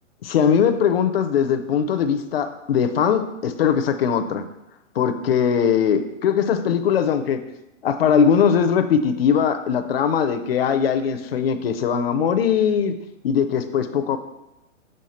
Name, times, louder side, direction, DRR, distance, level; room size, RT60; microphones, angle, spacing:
voice 1, 0.2-4.4 5.0-7.4 7.8-12.9 13.2-14.2, left 7 dB, 50° left, 8 dB, 0.5 m, -20 dB
6.4 x 3.6 x 4.2 m, 0.93 s
hypercardioid pair, 165°, 38 cm